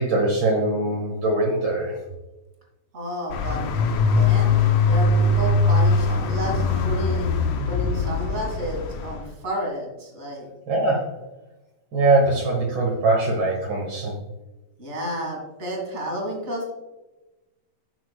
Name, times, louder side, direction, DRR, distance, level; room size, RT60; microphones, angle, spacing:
voice 1, 0.0-2.0 10.7-11.1 11.9-14.1, right 2 dB, 70° right, -1 dB, 1.0 m, -22 dB
voice 2, 2.9-3.7 4.1-4.5 4.8-7.3 7.6-10.5 14.8-16.7, equal, 25° right, 0 dB, 1.6 m, -31 dB
sound 1, 3.3-9.2, left 3 dB, 75° left, 1.9 m, -21 dB
11.5 x 6.1 x 2.3 m, 1.0 s
omnidirectional pair, 3.8 m